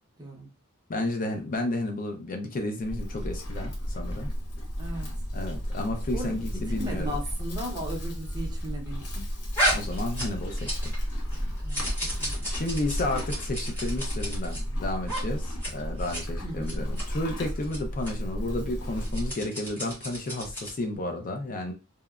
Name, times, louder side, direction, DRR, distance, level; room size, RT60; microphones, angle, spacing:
voice 1, 0.2-0.5 4.8-5.1 6.1-9.2 11.6-11.8 12.2-12.5 16.4-16.9, equal, 20° right, 0.7 m, -36 dB
voice 2, 0.9-4.3 5.3-7.1 9.7-10.9 11.8-11.9 12.5-21.7, left 2 dB, 40° left, 0.4 m, -32 dB
Livestock farm animals working animals, 2.8-19.3, equal, 85° left, 0.9 m, -33 dB
sound 1, 9.5-11.0 11.3-14.6 15.0-15.2 15.5-15.7 16.0-16.2 16.6-17.0 17.6-17.8 18.0-18.1 18.9-20.8, equal, 10° left, 1.2 m, -32 dB
2.8 x 2.1 x 2.3 m
head